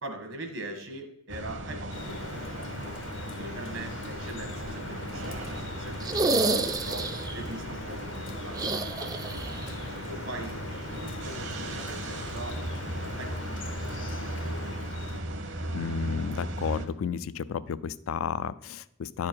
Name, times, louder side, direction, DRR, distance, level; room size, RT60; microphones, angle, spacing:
voice 1, 0.0-3.0 3.4-5.4 5.7-7.1 7.3-9.4 9.9-10.6 11.0-12.6 13.2-13.9 14.3-15.2, right 1 dB, 80° right, 5 dB, 1.6 m, -42 dB
sound 1, 1.3-16.9, right 1 dB, 60° right, 0.9 m, -37 dB
Drip, 1.9-15.2, left 3 dB, 65° left, 0.7 m, -41 dB
sound 2, 6.0-7.4 8.5-9.7 10.0-10.1 11.7-11.8, right 3 dB, 20° right, 0.3 m, -28 dB
voice 2, 15.7-19.3, left 7 dB, 85° left, 17 dB, 0.4 m, -32 dB
10.5 x 4.5 x 4.5 m, 0.76 s
head